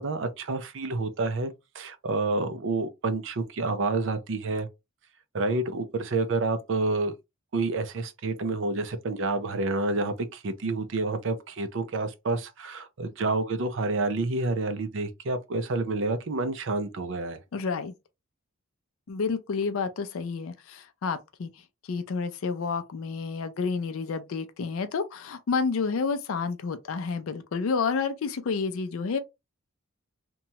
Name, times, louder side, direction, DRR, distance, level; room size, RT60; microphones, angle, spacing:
voice 1, 0.0-1.5 1.8-4.7 5.3-7.1 7.5-17.4, right 3 dB, 55° right, 0.4 m, -29 dB
voice 2, 17.5-17.9 19.1-21.5 21.9-29.2, left 5 dB, 70° left, 0.4 m, -30 dB
2.9 x 2.2 x 2.7 m
head